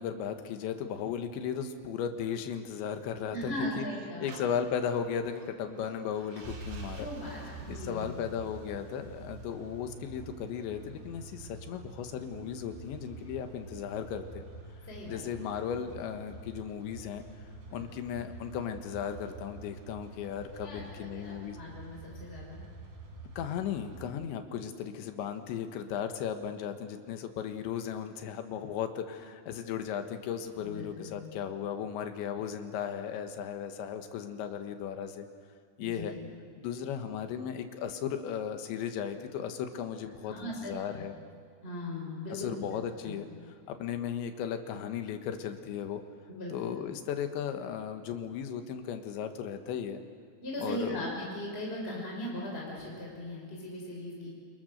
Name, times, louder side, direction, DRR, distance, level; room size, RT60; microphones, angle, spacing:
voice 1, 0.0-3.9 4.2-7.1 7.7-14.5 15.1-17.2 17.7-21.6 23.4-35.3 35.8-36.1 36.6-41.1 42.3-43.3 43.7-46.0 46.5-50.0 50.6-51.1, left 8 dB, 80° left, 7 dB, 3.8 m, -36 dB
voice 2, 3.3-4.3 6.9-8.1 14.9-15.2 17.7-17.9 20.6-22.6 30.6-31.3 35.8-36.1 40.3-41.0 41.6-42.5 43.0-43.2 46.3-46.7 50.4-54.3, left 1 dB, 15° left, -3 dB, 5.3 m, -39 dB
sound 1, 4.3-24.1, right 3 dB, 85° right, 5.4 m, -47 dB
29.5 x 27.5 x 6.6 m, 2.1 s
omnidirectional pair, 5.1 m